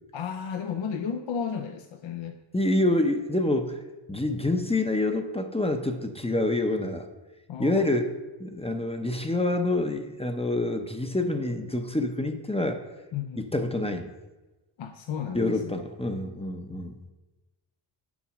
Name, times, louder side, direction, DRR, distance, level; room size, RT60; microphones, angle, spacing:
voice 1, 0.1-2.4 7.5-7.9 13.1-13.4 14.8-15.8, left 7 dB, 65° left, 5 dB, 0.7 m, -33 dB
voice 2, 2.5-3.8 4.1-7.1 7.6-8.1 8.4-12.8 13.4-14.1 15.3-16.9, left 2 dB, 10° left, 6 dB, 0.6 m, -27 dB
7.2 x 4.7 x 6.1 m, 1.1 s
cardioid pair, 90°, 50 cm